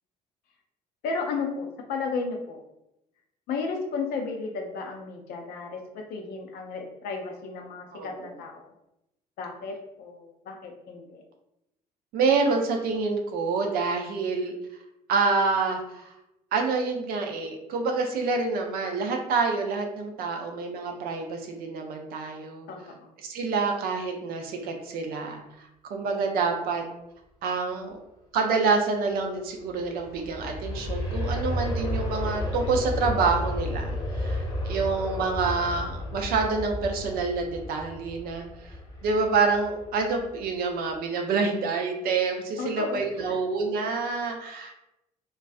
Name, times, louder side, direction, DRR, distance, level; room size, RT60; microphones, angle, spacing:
voice 1, 1.0-2.6 3.5-8.7 9.4-11.2 22.7-23.1 42.6-43.4, left 4 dB, 50° left, 3 dB, 0.5 m, -34 dB
voice 2, 7.9-8.3 12.1-14.5 15.1-16.0 16.5-22.7 23.2-26.8 27.4-28.0 28.3-33.9 34.1-38.5 39.0-44.8, right 4 dB, 50° right, 3 dB, 0.5 m, -27 dB
Aircraft, 29.6-40.4 40.9-41.0, left 1 dB, 20° left, 0.8 m, -32 dB
2.4 x 2.2 x 2.4 m, 0.86 s
figure-of-eight pair, 55°, 20 cm